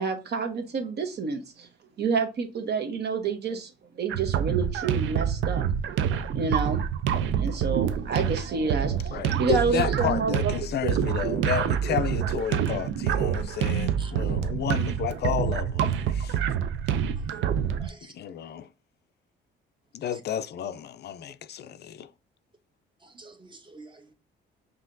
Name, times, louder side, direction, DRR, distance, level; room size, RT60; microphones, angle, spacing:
voice 1, 0.0-1.7 2.0-5.6 6.3-6.8 7.3-10.5 10.8-10.9, right 5 dB, 55° right, 0.9 m, -29 dB
sound 1, 4.1-17.9, right 8 dB, 80° right, 0.5 m, -27 dB
voice 2, 9.1-16.4 18.1-18.7 19.9-22.1, left 9 dB, 55° left, 0.4 m, -31 dB
voice 3, 17.3-18.1 23.1-24.1, right 3 dB, 25° right, 0.9 m, -49 dB
5.5 x 2.8 x 2.5 m
cardioid pair, 90°, 20 cm